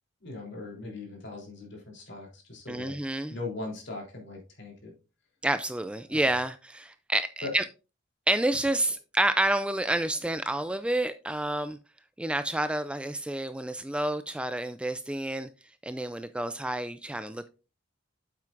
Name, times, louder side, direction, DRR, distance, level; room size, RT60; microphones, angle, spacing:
voice 1, 0.2-3.0 3.3-4.9 6.1-6.3 7.4-7.6, left 3 dB, 60° left, 3.4 m, -39 dB
voice 2, 2.7-3.3 5.4-7.6 8.3-11.8 12.2-15.5 15.8-17.5, right 1 dB, 5° right, 0.3 m, -29 dB
9.1 x 7.5 x 2.5 m
head